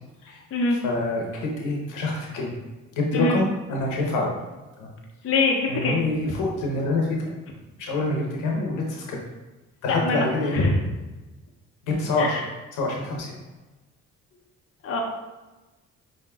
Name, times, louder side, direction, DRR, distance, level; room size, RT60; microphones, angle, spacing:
voice 1, 0.8-2.5 2.9-4.3 4.8-4.9 5.7-7.2 7.8-9.2 9.8-10.6 11.8-12.4 12.7-13.4, left 2 dB, 85° left, -1 dB, 1.0 m, -26 dB
voice 2, 5.2-6.0 9.9-10.7 12.2-12.4 14.8-15.0, left 3 dB, 50° left, 0 dB, 0.7 m, -24 dB
5.6 x 2.8 x 2.3 m, 1.1 s
cardioid pair, 90°, 30 cm